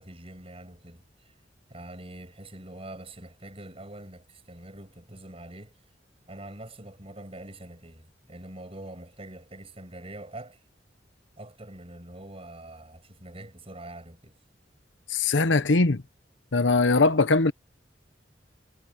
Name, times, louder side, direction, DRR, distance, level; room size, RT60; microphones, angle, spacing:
voice 1, 0.0-1.3 1.7-5.8 6.3-10.6 11.4-14.4, right 1 dB, 30° right, 7.3 m, -44 dB
voice 2, 15.1-16.0 16.5-17.5, left 3 dB, 90° left, 1.0 m, -21 dB
head